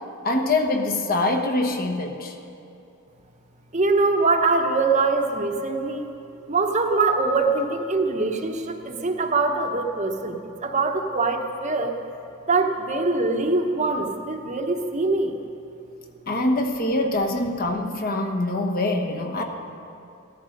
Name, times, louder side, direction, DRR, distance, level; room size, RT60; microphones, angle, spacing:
voice 1, 0.2-2.4 16.3-19.4, left 2 dB, 40° left, 4 dB, 1.2 m, -24 dB
voice 2, 3.7-6.1 6.5-10.4 10.6-12.0 12.5-15.3, right 3 dB, 35° right, 4 dB, 0.9 m, -23 dB
16.0 x 13.5 x 5.3 m, 2.8 s
head